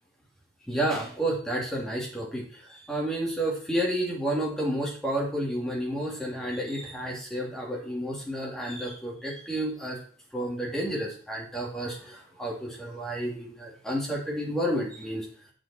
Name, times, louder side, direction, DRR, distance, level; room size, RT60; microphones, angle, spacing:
voice 1, 0.7-10.0 10.3-15.3, right 1 dB, ahead, -2 dB, 2.8 m, -31 dB
8.9 x 7.8 x 4.4 m, 0.43 s
head